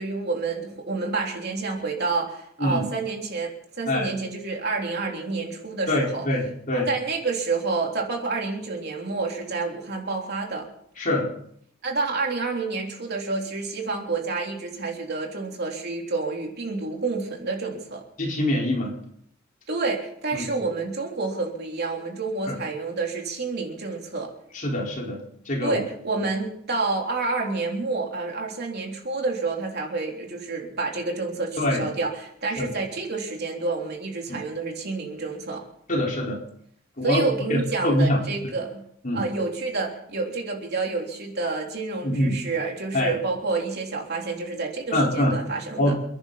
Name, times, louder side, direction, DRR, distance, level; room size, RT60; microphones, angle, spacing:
voice 1, 0.0-6.3 6.7-10.7 11.8-18.0 19.7-24.3 25.6-35.6 37.0-38.8 39.1-45.9, right 3 dB, 55° right, 0 dB, 3.6 m, -29 dB
voice 2, 5.9-6.9 11.0-11.3 18.2-18.9 20.3-20.5 22.5-22.6 24.5-25.2 25.4-25.8 31.6-31.8 32.6-32.7 34.3-34.4 35.9-36.4 37.0-37.2 37.5-38.2 39.0-39.2 42.0-42.4 42.9-43.1 44.9-45.3 45.8-45.9, left 1 dB, 40° left, -2 dB, 4.7 m, -24 dB
29.5 x 10.5 x 4.2 m, 0.68 s
head